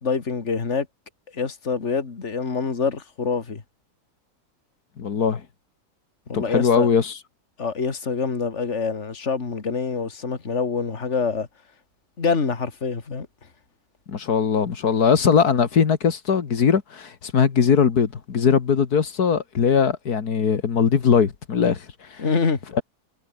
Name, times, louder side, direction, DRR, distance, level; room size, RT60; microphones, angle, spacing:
voice 1, 0.0-0.9 1.3-3.6 6.3-6.9 7.6-11.5 12.2-13.3 22.2-22.6, left 5 dB, 50° left, 2.5 m, -25 dB
voice 2, 5.0-5.4 6.3-7.2 14.1-22.2 22.7-22.8, left 6 dB, 85° left, 2.3 m, -20 dB
omnidirectional pair, 1.6 m